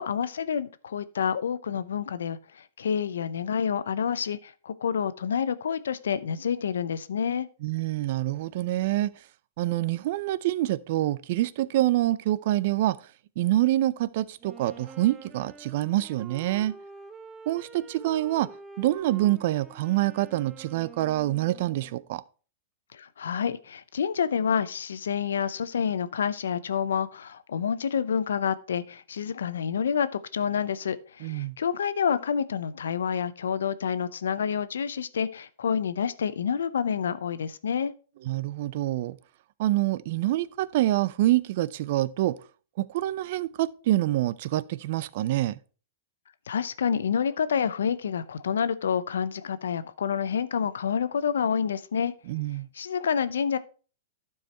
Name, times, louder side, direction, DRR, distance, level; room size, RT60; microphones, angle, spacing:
voice 1, 0.0-7.5 22.9-37.9 46.5-52.1 52.7-53.6, left 7 dB, 85° left, 0.6 m, -28 dB
voice 2, 7.6-9.1 9.6-13.0 13.4-16.7 17.5-18.5 18.8-22.2 31.2-31.6 38.2-39.2 39.6-42.4 42.8-45.6 52.3-52.7, right 15 dB, 60° right, 0.5 m, -26 dB
Wind instrument woodwind instrument, 14.4-22.1, right 5 dB, 15° right, 1.0 m, -47 dB
12.0 x 4.7 x 4.4 m
hypercardioid pair, 130°, 0 cm